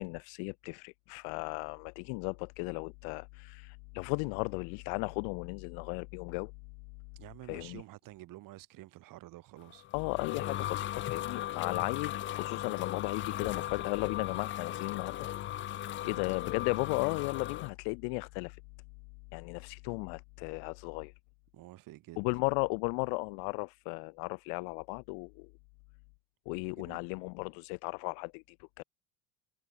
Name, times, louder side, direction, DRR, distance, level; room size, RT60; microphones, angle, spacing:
voice 1, 0.0-6.5 7.5-7.8 9.9-15.3 15.7-18.6 19.3-21.1 22.2-25.5 26.5-28.8, left 40 dB or more, 80° left, 0.6 m, -36 dB
voice 2, 7.1-9.9 16.0-16.3 21.5-22.2 26.7-27.0, right 16 dB, 55° right, 1.7 m, -50 dB
sound 1, 9.7-17.7, left 13 dB, 30° left, 0.4 m, -37 dB
cardioid pair, 130°, 40 cm